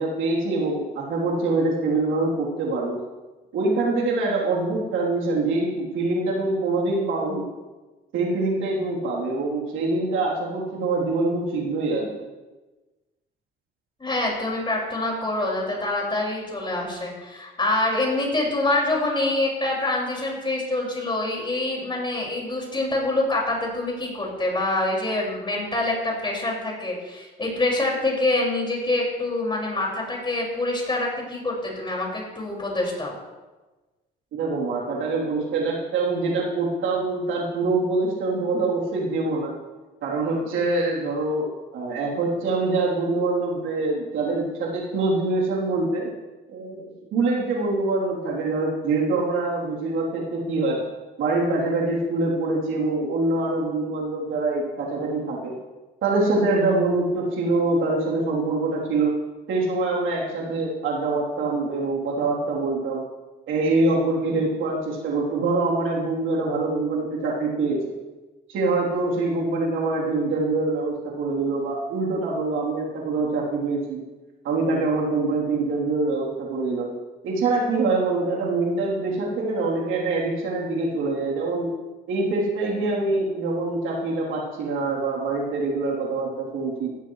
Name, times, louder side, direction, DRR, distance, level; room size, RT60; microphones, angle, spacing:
voice 1, 0.0-3.0 3.5-7.5 8.1-12.2 34.4-39.5 40.0-46.1 46.5-50.8 51.2-55.5 56.0-59.1 59.5-63.0 63.5-67.9 68.5-74.0 74.4-76.9 77.2-81.7 82.1-86.9, right 3 dB, 90° right, -3 dB, 3.4 m, -24 dB
voice 2, 14.0-33.1, left 2 dB, 25° left, -2 dB, 5.6 m, -25 dB
16.0 x 14.0 x 3.2 m, 1.2 s
cardioid pair, 90°, 20 cm